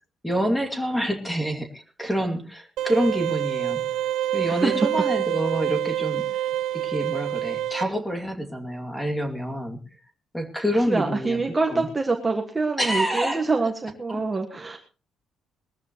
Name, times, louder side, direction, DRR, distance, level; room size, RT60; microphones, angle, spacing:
voice 1, 0.2-3.8 4.3-6.3 6.7-9.8 10.3-11.4 11.7-11.8 12.8-13.4 14.1-14.2, equal, 5° left, 5 dB, 2.4 m, -27 dB
sound 1, 2.8-7.8, right 12 dB, 75° right, 0.7 m, -27 dB
voice 2, 4.4-4.9 10.7-14.8, right 3 dB, 15° right, 3 dB, 1.6 m, -25 dB
21.0 x 14.0 x 3.0 m, 0.34 s
cardioid pair, 160°, 0 cm